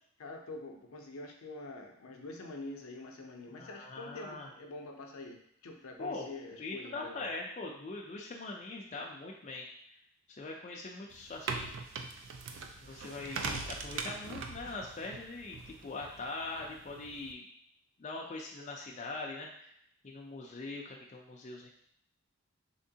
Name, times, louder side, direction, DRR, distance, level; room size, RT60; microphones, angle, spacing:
voice 1, 0.2-7.3, left 2 dB, 80° left, 2 dB, 0.6 m, -46 dB
voice 2, 3.6-4.5 6.0-6.3 6.6-9.7 10.3-11.6 12.8-17.4 18.0-19.7 20.0-21.7, left 3 dB, 30° left, -1 dB, 0.3 m, -42 dB
sound 1, 11.1-17.3, right 4 dB, 60° right, 0.3 m, -42 dB
3.5 x 2.9 x 2.7 m, 0.71 s
head